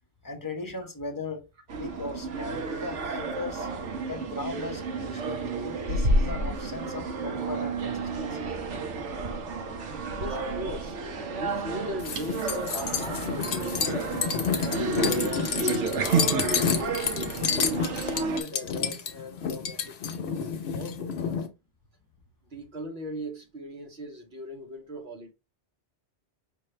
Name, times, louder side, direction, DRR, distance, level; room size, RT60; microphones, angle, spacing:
voice 1, 0.2-1.4 1.7-3.7 4.1-8.5 10.2-10.5, left 2 dB, 20° left, 0.7 m, -38 dB
sound 1, 1.7-18.4, right 3 dB, 85° right, 1.2 m, -30 dB
voice 2, 10.2-11.0 11.4-14.1 14.6-17.4 17.8-21.5 22.4-25.3, equal, 60° right, 1.1 m, -40 dB
sound 2, 12.0-21.5, left 6 dB, 65° left, 0.9 m, -29 dB
5.3 x 2.7 x 3.2 m
omnidirectional pair, 1.2 m